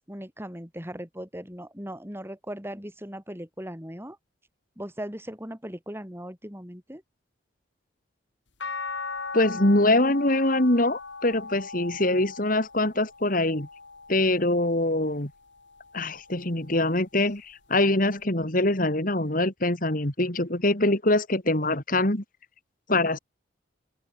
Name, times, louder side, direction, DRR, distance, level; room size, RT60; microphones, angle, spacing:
voice 1, 0.1-4.2 4.8-7.0, equal, 10° right, 5.3 m, -38 dB
sound 1, 8.6-14.9 15.5-16.8 18.2-18.3, left 4 dB, 70° left, 4.4 m, -39 dB
voice 2, 9.3-13.7 14.1-15.3 15.9-22.2 22.9-23.2, left 2 dB, 45° left, 3.0 m, -24 dB
open air
head